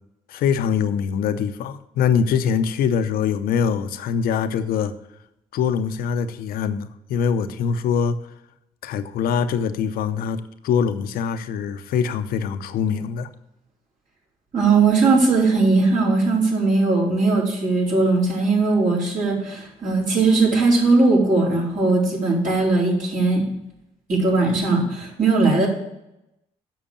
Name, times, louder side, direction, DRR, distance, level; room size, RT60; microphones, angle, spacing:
voice 1, 0.3-4.9 5.5-8.2 8.8-13.3, left 7 dB, 75° left, 11 dB, 0.7 m, -23 dB
voice 2, 14.5-23.4 24.1-25.7, right 3 dB, 55° right, -3 dB, 4.2 m, -19 dB
7.5 x 6.4 x 6.9 m, 0.86 s
supercardioid pair, 55°, 16 cm